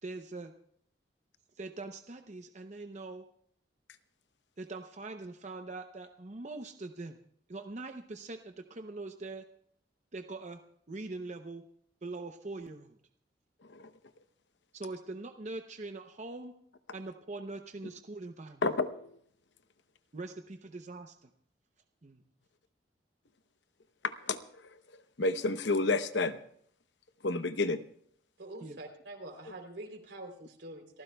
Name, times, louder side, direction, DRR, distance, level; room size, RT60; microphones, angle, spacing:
voice 1, 0.0-0.5 1.6-3.2 4.6-7.2 7.5-9.4 10.1-10.6 10.9-11.6 12.0-13.0 14.7-16.5 16.9-18.6 20.1-21.3 22.0-22.2 28.6-28.8, right 3 dB, 40° right, 6 dB, 0.7 m, -42 dB
voice 2, 18.6-19.2 24.0-24.6 25.2-26.4 27.2-27.8, left 3 dB, 90° left, 11 dB, 0.9 m, -30 dB
voice 3, 28.4-31.0, right 1 dB, 75° right, 3 dB, 3.3 m, -45 dB
29.0 x 15.0 x 2.3 m, 0.66 s
head